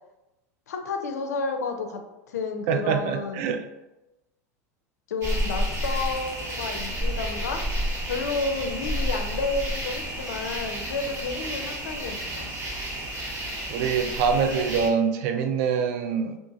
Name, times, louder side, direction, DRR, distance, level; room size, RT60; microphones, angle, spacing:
voice 1, 0.7-3.6 5.1-7.6 8.1-12.5, left 4 dB, 85° left, 5 dB, 0.4 m, -31 dB
voice 2, 2.7-3.7 13.7-16.4, right 6 dB, 60° right, 6 dB, 0.4 m, -25 dB
sound 1, 5.2-14.9, equal, 35° right, 0.9 m, -30 dB
2.7 x 2.4 x 2.6 m, 0.98 s
hypercardioid pair, 90°, 9 cm